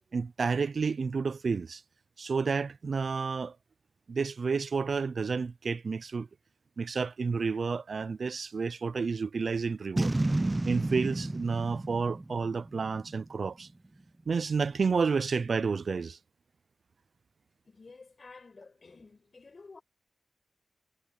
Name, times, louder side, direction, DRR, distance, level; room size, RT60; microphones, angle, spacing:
voice 1, 0.1-1.8 2.2-3.6 4.1-6.3 6.8-10.1 10.6-13.7 14.3-16.2, right 5 dB, 70° right, 0.5 m, -30 dB
Boom, 10.0-13.3, right 2 dB, 25° right, 0.9 m, -31 dB
voice 2, 17.6-19.8, left 4 dB, 55° left, 7.3 m, -52 dB
cardioid pair, 65°, 0 cm